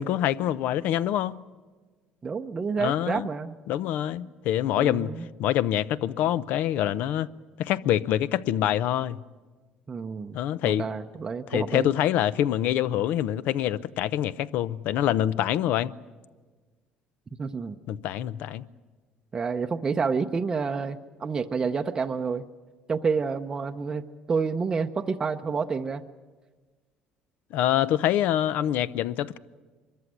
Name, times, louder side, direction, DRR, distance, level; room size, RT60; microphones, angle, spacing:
voice 1, 0.0-1.4 2.8-3.3 3.7-5.1 5.4-7.3 7.6-9.2 10.3-10.9 11.5-15.9 17.9-18.7 27.5-29.4, left 12 dB, 65° left, 0.6 m, -25 dB
voice 2, 2.2-3.6 4.8-5.3 9.9-10.4 10.6-11.9 17.4-17.8 19.3-22.4 22.9-26.0, right 5 dB, 20° right, 0.6 m, -29 dB
23.5 x 14.0 x 9.9 m
cardioid pair, 145°, 3 cm